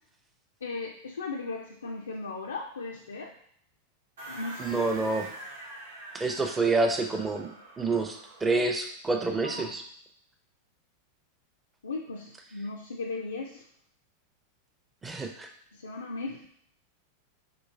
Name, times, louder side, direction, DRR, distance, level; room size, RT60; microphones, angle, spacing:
voice 1, 0.6-3.4 4.3-4.9 9.5-9.7 11.8-13.6 15.7-16.5, left 3 dB, 70° left, 0 dB, 0.3 m, -37 dB
sound 1, 4.2-8.6, right 2 dB, 60° right, 0.8 m, -44 dB
voice 2, 4.6-5.3 6.1-9.8 15.0-15.5, right 3 dB, 15° right, 4 dB, 0.5 m, -28 dB
3.7 x 2.8 x 2.6 m, 0.65 s
figure-of-eight pair, 90°, 0 cm